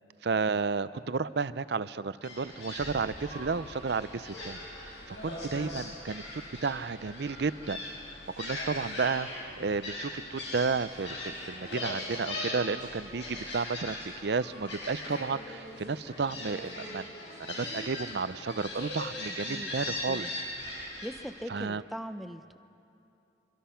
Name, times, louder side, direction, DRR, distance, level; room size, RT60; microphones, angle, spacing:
voice 1, 0.2-7.8 8.1-17.1 17.5-20.3 20.6-20.8 21.5-21.8, right 4 dB, 60° right, 15 dB, 0.5 m, -32 dB
Gull seagull, 2.2-21.3, left 1 dB, 70° left, 7.2 m, -40 dB
sound 1, 4.4-14.6, left 1 dB, 45° left, 2.3 m, -55 dB
voice 2, 21.0-22.6, equal, ahead, 9 dB, 0.6 m, -40 dB
24.5 x 24.0 x 5.7 m, 2.8 s
head